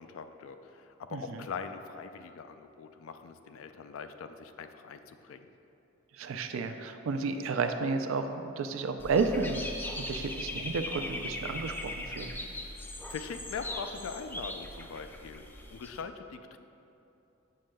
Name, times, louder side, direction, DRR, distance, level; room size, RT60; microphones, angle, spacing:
voice 1, 0.0-5.5 12.7-16.6, left 5 dB, 90° left, 8 dB, 0.3 m, -42 dB
voice 2, 1.1-1.4 6.1-9.6 10.0-12.3, right 4 dB, 80° right, 8 dB, 0.4 m, -32 dB
Dog / Bird, 9.0-16.0, left 1 dB, 10° left, 0.3 m, -39 dB
7.5 x 6.2 x 2.2 m, 2.8 s
head